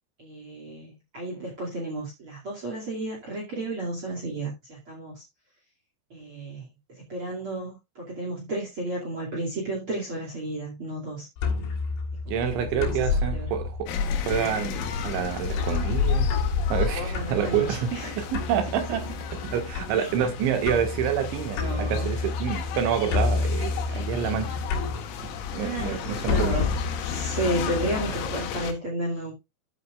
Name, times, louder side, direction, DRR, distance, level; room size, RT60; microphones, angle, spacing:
voice 1, 0.2-5.2 6.1-6.7 7.1-11.3 12.2-13.0 13.3-13.5 16.9-18.2 20.0-20.1 21.6-22.1 25.6-26.7 27.0-29.3, right 1 dB, 35° right, 2.3 m, -32 dB
sound 1, 11.4-28.2, left 4 dB, 65° left, 5.1 m, -30 dB
voice 2, 12.3-16.3 16.7-19.1 19.4-24.5 25.2-26.7, right 8 dB, 70° right, 3.8 m, -28 dB
sound 2, 13.9-28.7, left 8 dB, 85° left, 4.2 m, -36 dB
13.5 x 7.9 x 2.4 m
omnidirectional pair, 5.9 m